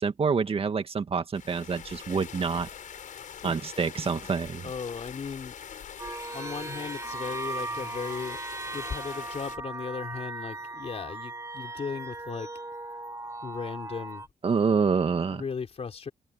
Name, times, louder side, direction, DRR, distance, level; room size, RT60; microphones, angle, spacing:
voice 1, 0.0-2.7 3.4-4.7 14.4-15.4, right 5 dB, 40° right, 1.9 m, -27 dB
sound 1, 1.3-9.6, left 8 dB, 60° left, 6.2 m, -44 dB
voice 2, 4.6-5.5 6.3-8.4 8.7-12.5 13.4-14.3 15.3-16.1, left 5 dB, 45° left, 4.0 m, -36 dB
sound 2, 6.0-14.3, right 2 dB, 20° right, 2.8 m, -38 dB
open air
cardioid pair, 110°, 15 cm